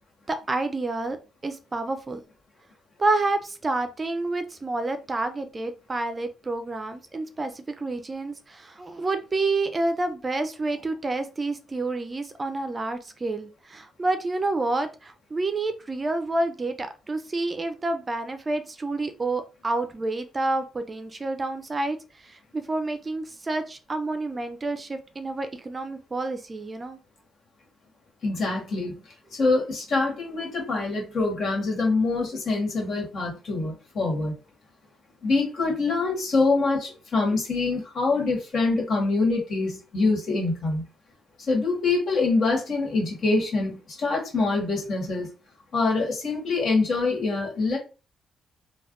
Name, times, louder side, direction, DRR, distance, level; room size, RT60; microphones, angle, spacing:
voice 1, 0.3-1.2 1.4-2.2 3.0-27.0, right 2 dB, 25° right, 8 dB, 0.4 m, -29 dB
voice 2, 28.2-29.0 29.3-34.3 35.2-40.8 41.5-45.3 45.7-47.8, left 3 dB, 60° left, -1 dB, 1.5 m, -25 dB
3.3 x 2.2 x 2.5 m, 0.32 s
cardioid pair, 90°, 0 cm